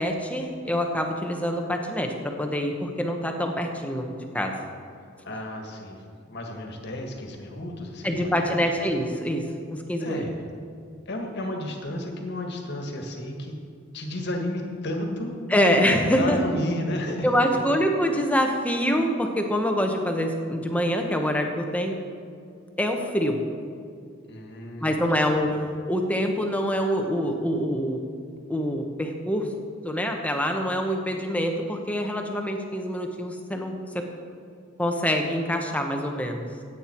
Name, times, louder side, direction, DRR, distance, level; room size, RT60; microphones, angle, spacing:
voice 1, 0.0-4.5 8.0-10.2 15.5-16.4 17.2-22.0 22.8-23.4 24.8-28.0 28.5-29.5 29.8-34.0 34.8-36.5, equal, 5° left, 3 dB, 1.1 m, -25 dB
voice 2, 5.2-8.6 10.0-10.3 11.0-13.6 13.9-15.4 16.1-17.6 24.3-25.0, left 1 dB, 55° left, 2 dB, 1.7 m, -32 dB
15.5 x 8.9 x 4.5 m, 2.4 s
head